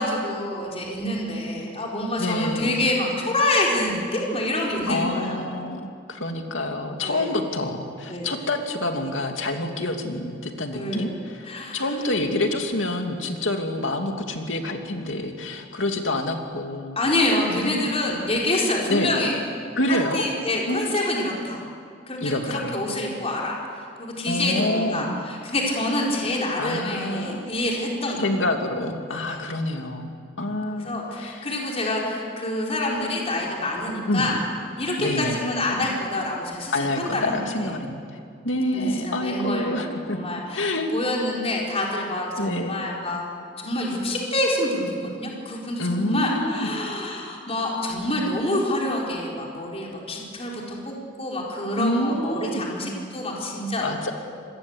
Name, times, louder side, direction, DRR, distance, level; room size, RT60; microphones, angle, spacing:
voice 1, 0.0-5.5 7.0-7.4 8.1-8.4 10.7-11.1 11.4-11.8 17.0-19.4 19.9-21.6 22.1-23.6 24.0-28.3 29.1-29.4 30.7-34.4 34.8-37.4 38.7-43.3 43.6-53.9, left 1 dB, 30° left, -2 dB, 4.5 m, -27 dB
voice 2, 2.2-2.7 4.9-5.8 6.1-17.0 17.5-17.9 18.9-19.1 19.8-20.2 20.7-20.8 22.2-22.8 24.3-25.1 26.6-27.4 28.2-31.5 34.1-34.2 35.0-35.4 36.7-38.0 38.4-40.2 40.5-40.9 42.4-42.8 45.8-46.7 51.8-52.6 53.8-54.1, left 1 dB, 70° left, 4 dB, 2.7 m, -27 dB
27.0 x 21.5 x 8.2 m, 2.3 s
head